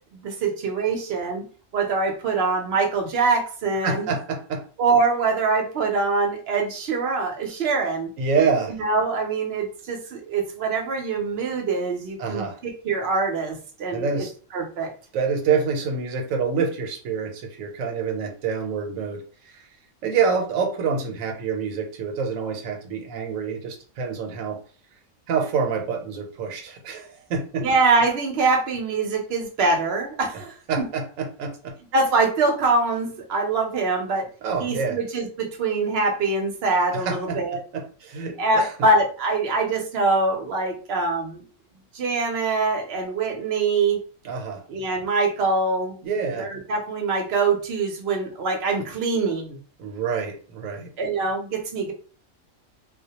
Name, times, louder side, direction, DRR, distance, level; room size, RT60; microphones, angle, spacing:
voice 1, 0.1-1.4 1.7-4.1 4.8-8.1 8.7-14.3 14.5-14.9 27.6-30.9 31.9-34.3 34.6-37.6 38.4-41.4 41.9-44.0 44.7-46.0 46.4-49.6 51.0-51.9, right 3 dB, 60° right, 2 dB, 0.7 m, -24 dB
voice 2, 3.8-4.6 8.2-8.8 12.2-12.6 13.9-14.3 15.1-19.7 20.0-24.6 25.3-27.7 30.7-31.7 34.4-35.0 36.9-37.4 37.7-38.7 44.2-44.6 46.0-46.5 49.8-50.9, right 5 dB, 85° right, 3 dB, 1.0 m, -27 dB
2.3 x 2.1 x 2.7 m, 0.40 s
omnidirectional pair, 1.4 m